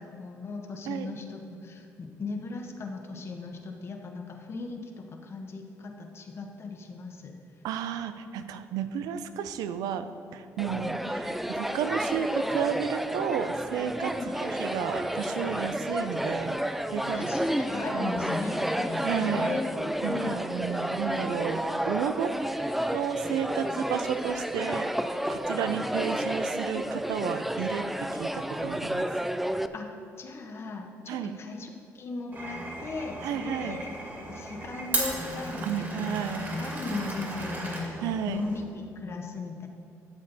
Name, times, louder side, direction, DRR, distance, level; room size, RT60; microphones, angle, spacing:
voice 1, 0.0-7.4 14.1-14.3 17.1-20.4 23.7-23.8 25.6-25.9 29.7-29.9 30.2-33.9 34.3-36.2 36.5-39.7, left 3 dB, 45° left, 3 dB, 1.2 m, -37 dB
voice 2, 7.6-10.1 10.3-14.1 14.4-17.3 17.9-18.2 19.0-19.6 20.0-22.3 22.9-24.9 25.3-27.9 28.1-29.1 31.1-31.4 33.2-33.8 35.6-36.6 38.0-38.4, right 8 dB, 90° right, 10 dB, 0.5 m, -32 dB
sound 1, 10.6-29.7, equal, 5° right, 0.4 m, -31 dB
Glass, 32.3-38.6, right 1 dB, 35° right, 2.5 m, -35 dB
12.5 x 7.6 x 4.1 m, 2.5 s
cardioid pair, 100°, 6 cm